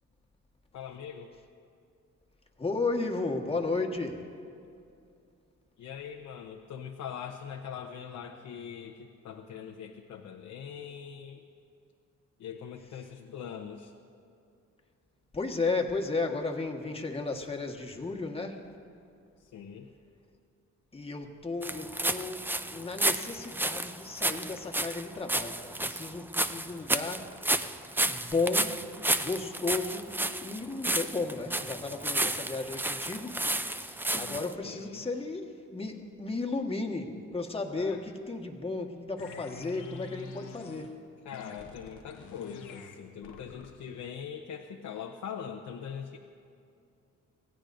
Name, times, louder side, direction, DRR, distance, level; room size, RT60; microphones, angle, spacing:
voice 1, 0.7-1.3 5.8-11.4 12.4-13.9 19.4-19.9 34.1-35.0 37.6-38.0 41.2-46.2, left 7 dB, 75° left, 2 dB, 1.0 m, -42 dB
voice 2, 2.6-4.2 15.3-18.6 20.9-22.4 22.7-27.3 28.1-28.8 29.2-30.1 30.4-33.4 33.7-40.9, left 3 dB, 20° left, 2 dB, 1.5 m, -34 dB
sound 1, 21.6-34.5, right 1 dB, 5° right, 0.5 m, -31 dB
sound 2, 39.2-41.0 41.3-43.9, left 5 dB, 90° left, 1.2 m, -46 dB
24.5 x 16.5 x 2.6 m, 2.5 s
cardioid pair, 90°, 30 cm